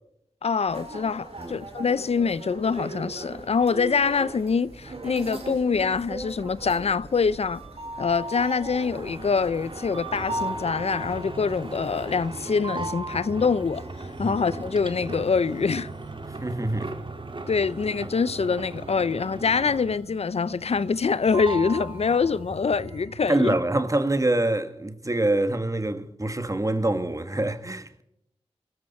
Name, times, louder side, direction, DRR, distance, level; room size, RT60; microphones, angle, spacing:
voice 1, 0.4-7.6 8.0-15.9 17.5-23.6, left 5 dB, 65° left, 0.5 m, -25 dB
sound 1, 0.7-12.2, right 2 dB, 65° right, 4.4 m, -38 dB
sound 2, 8.7-20.2 20.5-21.1 21.3-22.6, right 2 dB, 50° right, 1.9 m, -38 dB
sound 3, 10.1-23.3, right 3 dB, 85° right, 3.7 m, -43 dB
voice 2, 16.2-16.9 23.3-28.0, right 2 dB, 30° right, 1.7 m, -25 dB
22.0 x 14.5 x 4.3 m
cardioid pair, 50°, 11 cm